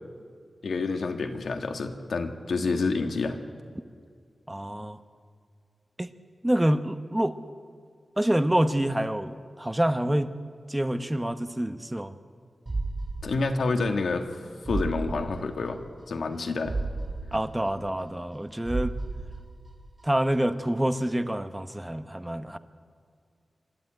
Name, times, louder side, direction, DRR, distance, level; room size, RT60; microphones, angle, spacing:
voice 1, 0.6-3.4 13.2-14.4 14.7-15.8 16.1-16.8, left 3 dB, 85° left, 5 dB, 1.7 m, -28 dB
voice 2, 4.5-5.0 6.0-6.1 6.4-7.4 8.2-10.3 10.7-12.2 17.3-18.9 20.0-22.6, right 1 dB, 10° right, 10 dB, 1.0 m, -27 dB
sound 1, 12.7-14.0 14.3-14.4 14.7-16.0 16.3-16.4 16.7-18.4 18.7-20.0 20.3-20.4, right 2 dB, 35° right, 5.4 m, -34 dB
26.0 x 12.0 x 9.1 m, 2.3 s
wide cardioid pair, 90°, 0 cm